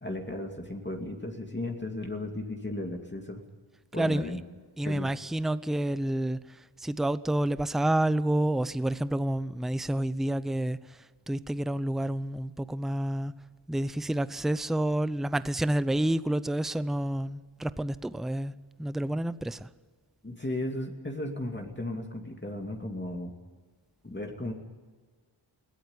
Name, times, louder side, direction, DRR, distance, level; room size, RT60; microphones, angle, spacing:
voice 1, 0.0-3.4 3.9-4.4 4.8-5.1 20.2-23.3 24.0-24.5, left 1 dB, 20° left, 2.6 m, -35 dB
voice 2, 3.9-4.3 4.8-6.4 6.8-10.8 11.3-13.4 13.7-19.7, right 1 dB, ahead, 0.6 m, -29 dB
21.5 x 16.5 x 9.7 m
wide cardioid pair, 80°, 50 cm